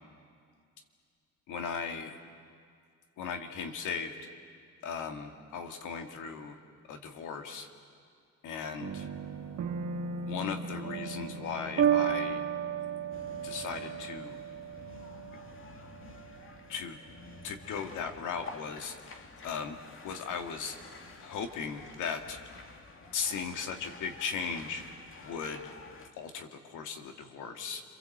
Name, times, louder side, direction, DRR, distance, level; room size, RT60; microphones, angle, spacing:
voice 1, 1.5-2.2 3.2-4.2 4.8-6.6 6.9-7.7 8.4-9.1 10.2-12.5 13.4-14.4 16.7-17.0 17.4-20.8 21.2-22.4 23.1-24.8 25.2-25.7 26.2-27.8, left 6 dB, 85° left, 5 dB, 2.2 m, -37 dB
sound 1, 8.8-17.8, right 8 dB, 60° right, 1.7 m, -34 dB
sound 2, 13.1-26.1, left 4 dB, 45° left, 2.1 m, -50 dB
29.5 x 23.0 x 7.9 m, 2.2 s
cardioid pair, 90°, 30 cm